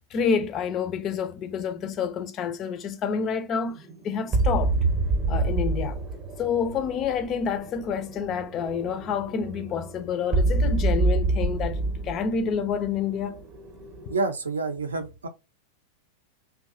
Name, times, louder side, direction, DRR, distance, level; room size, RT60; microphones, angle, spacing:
voice 1, 0.1-3.8 4.0-4.7 5.3-6.0 6.4-13.4, left 6 dB, 30° left, 0.4 m, -28 dB
sound 1, 3.7-14.2, right 2 dB, 25° right, 0.7 m, -28 dB
voice 2, 14.1-15.3, right 3 dB, 70° right, 0.4 m, -28 dB
2.7 x 2.2 x 2.4 m
figure-of-eight pair, 90°, 0 cm